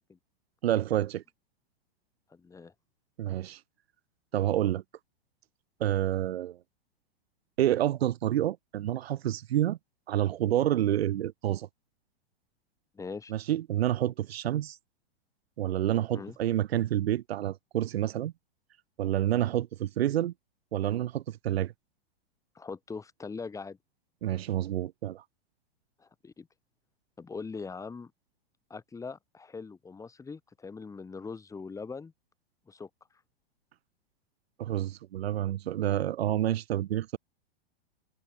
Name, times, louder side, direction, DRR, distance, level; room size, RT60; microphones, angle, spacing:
voice 1, 0.6-1.2 3.2-3.6 4.3-4.8 5.8-6.6 7.6-9.8 10.1-11.7 13.3-14.8 15.6-18.3 19.0-20.3 20.7-21.7 24.2-25.2 34.6-37.2, right 12 dB, 80° right, 1.1 m, -28 dB
voice 2, 2.3-2.7 12.9-13.3 16.1-16.4 22.6-23.8 26.0-26.5 27.2-28.1 28.7-32.1 32.7-32.9, left 4 dB, 10° left, 2.0 m, -41 dB
hypercardioid pair, 135°, 30 cm